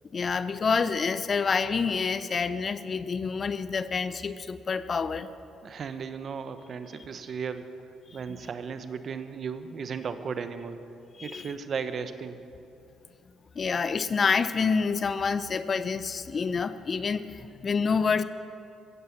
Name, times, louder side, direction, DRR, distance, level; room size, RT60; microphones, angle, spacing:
voice 1, 0.1-5.3 8.3-8.4 11.2-11.5 13.5-18.2, left 5 dB, 45° left, 13 dB, 0.8 m, -27 dB
voice 2, 5.6-7.6 8.1-10.8 11.2-12.4, right 6 dB, 55° right, 10 dB, 1.1 m, -35 dB
15.5 x 15.0 x 6.1 m, 2.8 s
supercardioid pair, 60°, 0 cm